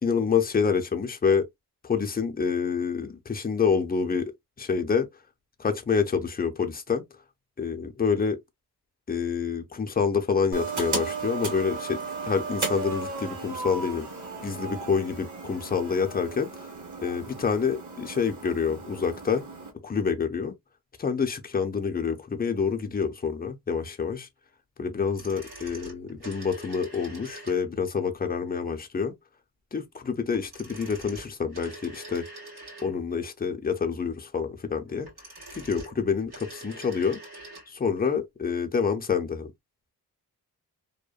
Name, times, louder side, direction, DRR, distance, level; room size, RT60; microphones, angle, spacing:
voice 1, 0.0-1.5 1.8-4.3 4.6-5.1 5.6-7.0 7.6-8.4 9.1-14.1 14.4-16.7 17.0-19.5 19.8-20.6 21.0-24.3 24.8-29.1 29.7-32.2 32.8-35.1 35.5-37.2 37.7-39.5, left 6 dB, 25° left, 0.5 m, -27 dB
sound 1, 10.5-19.7, right 4 dB, 50° right, 1.0 m, -35 dB
sound 2, 25.0-27.9 30.3-33.2 34.9-37.7 38.0-38.1, right 1 dB, 85° right, 1.5 m, -45 dB
2.8 x 2.1 x 2.3 m
wide cardioid pair, 120°, 38 cm